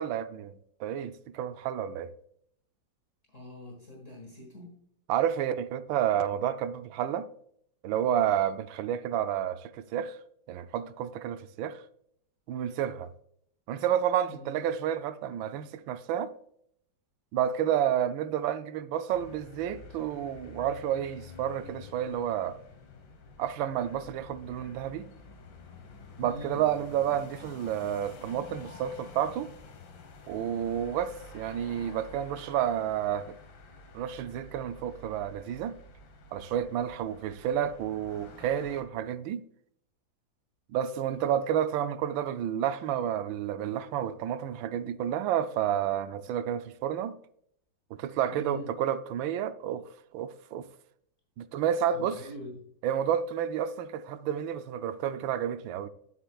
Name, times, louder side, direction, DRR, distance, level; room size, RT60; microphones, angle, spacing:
voice 1, 0.0-2.1 5.1-7.3 7.8-10.2 10.5-11.8 12.5-13.1 13.7-16.3 17.3-22.6 23.4-25.1 26.2-29.5 30.3-33.4 33.9-35.8 36.3-39.4 40.7-47.2 47.9-50.7 51.4-52.2 52.8-55.9, right 10 dB, 90° right, 1.4 m, -30 dB
voice 2, 3.3-4.7 14.3-14.5 26.2-26.6 48.3-48.7 51.9-52.6, equal, 40° left, 1.9 m, -43 dB
sound 1, 19.1-38.8, left 3 dB, 80° left, 1.9 m, -50 dB
11.5 x 6.9 x 2.3 m
omnidirectional pair, 2.1 m